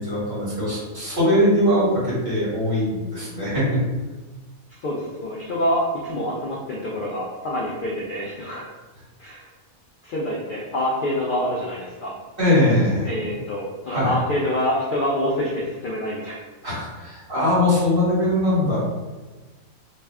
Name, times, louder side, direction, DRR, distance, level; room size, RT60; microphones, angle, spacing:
voice 1, 0.0-3.8 12.4-13.1 13.9-14.1 16.6-18.8, left 1 dB, 40° right, -9 dB, 1.8 m, -21 dB
voice 2, 4.8-8.7 9.2-9.5 10.0-12.1 13.0-16.4, left 1 dB, 75° left, -4 dB, 0.4 m, -26 dB
3.3 x 2.4 x 3.4 m, 1.3 s
omnidirectional pair, 1.5 m